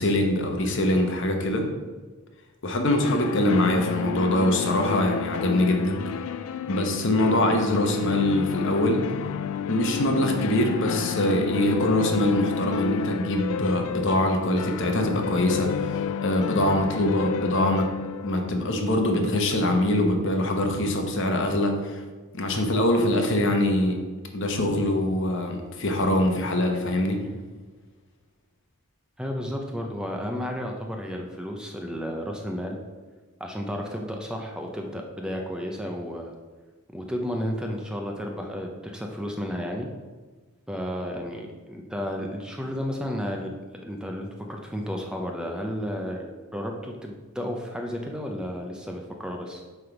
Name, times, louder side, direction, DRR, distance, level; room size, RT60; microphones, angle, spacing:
voice 1, 0.0-1.7 2.6-6.0 6.7-9.1 9.7-17.9 18.2-22.0 22.3-24.0 24.3-27.2, left 1 dB, 55° left, 3 dB, 1.0 m, -23 dB
sound 1, 3.0-19.8, left 7 dB, 70° left, 0.3 m, -31 dB
voice 2, 29.2-32.8 33.4-36.3 36.9-39.9 40.7-43.5 43.8-46.2 46.5-49.6, equal, 5° right, 1 dB, 0.6 m, -32 dB
7.8 x 3.4 x 5.8 m, 1.3 s
head